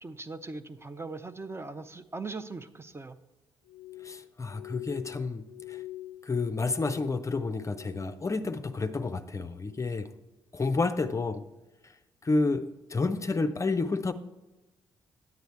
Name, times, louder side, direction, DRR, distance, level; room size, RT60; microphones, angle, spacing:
voice 1, 0.0-3.2, right 3 dB, 20° right, 11 dB, 0.6 m, -40 dB
Glass, 3.7-8.2 8.5-9.2 9.6-10.1 10.7-11.0, left 15 dB, 70° left, 0.4 m, -46 dB
voice 2, 4.0-5.8 6.2-10.1 10.5-11.4 11.8-11.9 12.2-14.1, left 3 dB, 25° left, 10 dB, 0.5 m, -30 dB
9.3 x 9.1 x 3.3 m, 1.1 s
figure-of-eight pair, 40°, 13 cm